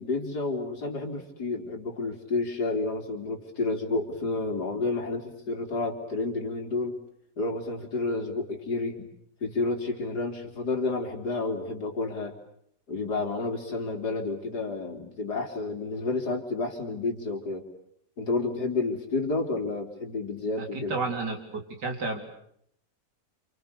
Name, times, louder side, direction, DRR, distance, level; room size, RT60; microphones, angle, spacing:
voice 1, 0.0-7.0 7.4-9.1 9.4-12.4 12.9-17.7 18.2-21.0, left 3 dB, 70° left, 4 dB, 4.0 m, -30 dB
voice 2, 20.6-22.2, right 3 dB, 80° right, 4 dB, 4.5 m, -32 dB
29.0 x 28.5 x 6.9 m, 0.70 s
omnidirectional pair, 1.8 m